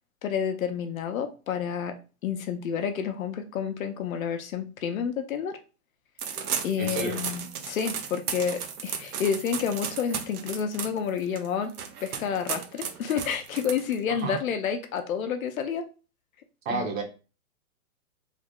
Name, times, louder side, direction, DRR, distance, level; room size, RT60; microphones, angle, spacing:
voice 1, 0.2-2.0 2.2-5.6 6.6-11.7 12.0-15.8 16.7-16.9, left 7 dB, 65° left, 7 dB, 0.7 m, -29 dB
sound 1, 6.2-14.2, right 7 dB, 85° right, 0.8 m, -35 dB
voice 2, 6.8-7.2 14.1-14.4 16.6-17.0, right 4 dB, 60° right, 3 dB, 1.2 m, -31 dB
3.4 x 2.0 x 3.6 m, 0.33 s
hypercardioid pair, 165°, 44 cm